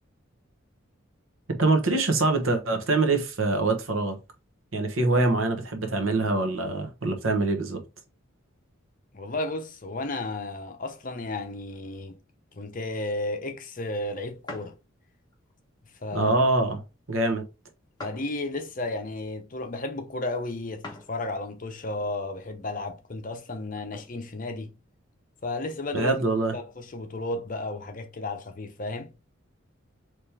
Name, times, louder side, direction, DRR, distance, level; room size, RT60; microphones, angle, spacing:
voice 1, 1.5-4.2 4.7-7.8 16.1-16.8 17.1-17.4 25.9-26.5, right 2 dB, 80° right, 1.1 m, -24 dB
voice 2, 9.1-12.2 12.5-14.7 16.0-16.3 18.0-20.8 21.1-24.7 25.4-26.1 26.5-29.1, left 2 dB, 40° left, 0.7 m, -33 dB
sound 1, 14.5-14.7 15.3-15.5 16.2-16.5 18.0-18.7 20.8-21.1 21.6-21.7 23.4-24.1, left 2 dB, 20° left, 1.1 m, -42 dB
4.3 x 3.2 x 3.3 m
head